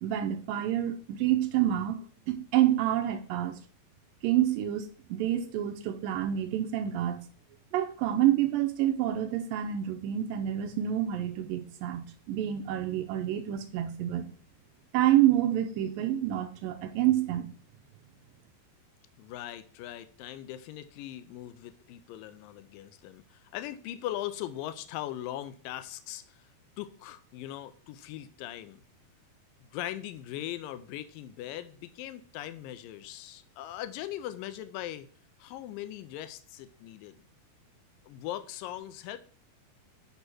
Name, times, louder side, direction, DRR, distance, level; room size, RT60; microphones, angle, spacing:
voice 1, 0.0-3.6 4.2-7.2 7.7-14.3 14.9-17.5, right 12 dB, 80° right, 2.2 m, -28 dB
voice 2, 19.2-26.5 26.8-28.8 29.7-35.1 35.4-37.2 38.1-39.2, left 13 dB, 85° left, 2.0 m, -40 dB
8.1 x 3.4 x 6.1 m
omnidirectional pair, 4.5 m